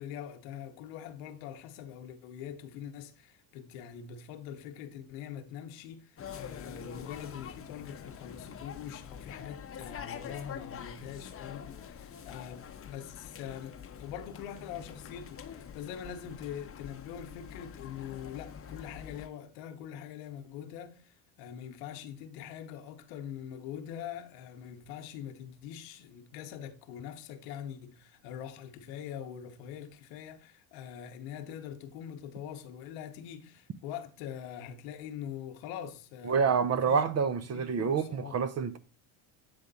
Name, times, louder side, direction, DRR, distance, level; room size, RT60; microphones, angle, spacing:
voice 1, 0.0-37.0 37.5-38.4, left 9 dB, 80° left, 1.1 m, -43 dB
sound 1, 6.2-19.3, left 8 dB, 30° left, 0.7 m, -45 dB
voice 2, 36.2-38.8, right 6 dB, 35° right, 0.6 m, -27 dB
8.5 x 3.5 x 4.0 m
supercardioid pair, 85°, 49 cm